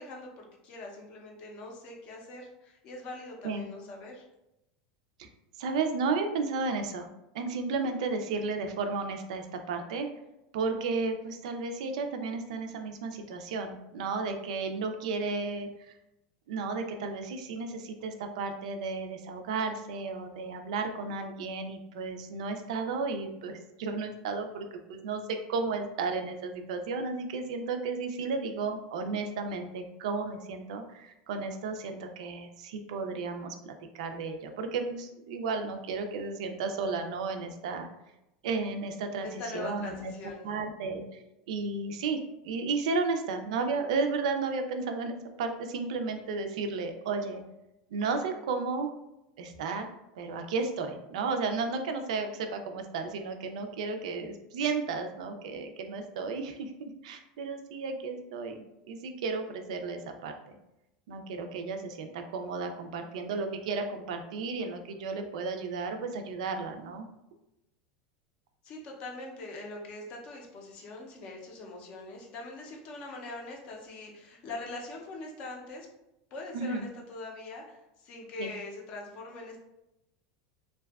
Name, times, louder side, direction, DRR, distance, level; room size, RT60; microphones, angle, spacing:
voice 1, 0.0-4.2 39.2-40.5 68.6-75.9 76.3-79.6, left 2 dB, 35° left, 0 dB, 0.4 m, -42 dB
voice 2, 5.6-7.1 7.3-10.1 10.5-15.9 16.5-37.9 38.4-40.1 40.4-41.2 41.5-47.4 47.9-48.9 49.4-60.3 61.1-67.1 76.5-76.9 78.4-78.5, right 4 dB, 90° right, 6 dB, 0.3 m, -33 dB
2.5 x 2.2 x 2.2 m, 0.89 s
supercardioid pair, 175°, 4 cm